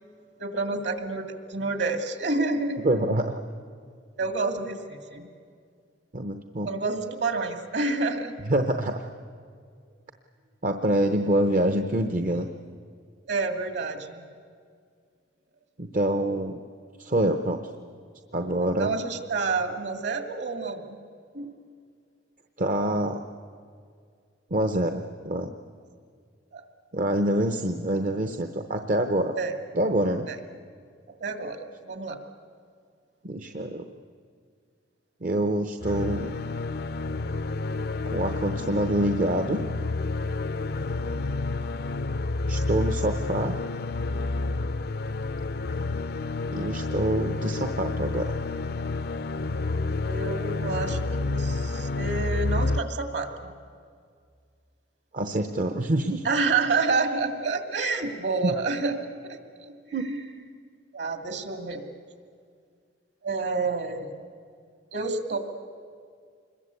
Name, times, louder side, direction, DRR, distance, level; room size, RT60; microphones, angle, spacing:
voice 1, 0.4-2.8 4.2-5.3 6.6-8.3 13.3-14.2 18.8-21.0 21.3-21.5 26.5-26.6 29.4-29.5 30.3-30.4 31.2-32.2 41.0-41.2 50.0-53.5 56.2-59.0 59.3-60.2 60.9-61.8 63.2-64.1 64.9-65.4, right 3 dB, 60° right, 6 dB, 2.3 m, -29 dB
voice 2, 2.8-3.4 6.1-6.7 8.5-9.1 10.6-12.5 15.8-16.6 17.0-17.6 18.3-18.9 22.6-23.2 24.5-25.5 26.9-29.3 29.7-30.3 33.2-33.9 35.2-36.3 38.1-39.6 42.5-43.6 46.5-48.3 55.1-56.2 58.4-58.6 59.9-60.1, right 1 dB, 45° right, 7 dB, 0.8 m, -26 dB
sound 1, 35.8-52.8, left 3 dB, 55° left, 0.6 m, -29 dB
26.0 x 21.5 x 8.3 m, 2.2 s
head